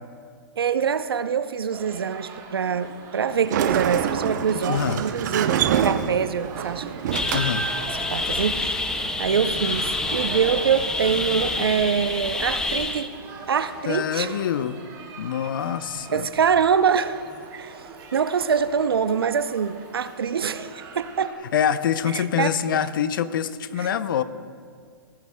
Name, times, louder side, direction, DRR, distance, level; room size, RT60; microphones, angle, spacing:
voice 1, 0.6-6.9 7.9-8.8 9.2-13.1 13.5-14.4 16.1-17.2 17.5-17.9 18.1-21.4 22.1-22.8 23.8-23.9, right 7 dB, 85° right, 12 dB, 0.6 m, -24 dB
sound 1, 1.7-21.3, right 4 dB, 30° right, 1.8 m, -41 dB
Sliding door, 3.3-10.8, right 9 dB, 50° right, 0.7 m, -28 dB
voice 2, 4.7-5.0 7.3-7.7 13.9-14.9 15.2-16.3 21.5-24.2, left 8 dB, 65° left, 14 dB, 0.6 m, -25 dB
sound 2, 7.1-13.1, left 3 dB, 5° left, 0.5 m, -28 dB
18.5 x 14.0 x 2.2 m, 2.1 s
hypercardioid pair, 140°, 12 cm